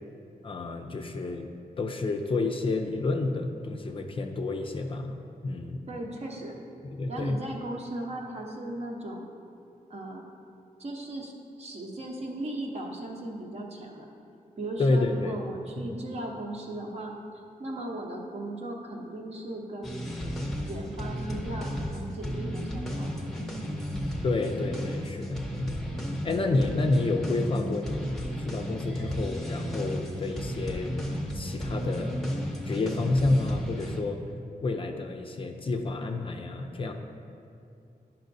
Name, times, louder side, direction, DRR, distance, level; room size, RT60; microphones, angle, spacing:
voice 1, 0.4-1.5 1.8-5.2 5.4-5.8 7.0-7.4 14.8-15.3 15.8-16.0 24.2-25.9 26.2-31.0 31.3-32.3 32.6-34.2 34.6-36.9, left 2 dB, 35° left, 4 dB, 0.4 m, -29 dB
voice 2, 5.9-6.6 7.1-9.3 9.9-10.3 10.8-11.3 11.6-14.1 14.6-17.1 17.6-20.1 20.7-23.3, right 1 dB, 45° right, 0 dB, 0.8 m, -37 dB
sound 1, 19.8-34.0, equal, 5° left, 0.7 m, -34 dB
10.0 x 5.7 x 2.6 m, 2.6 s
wide cardioid pair, 150°, 15 cm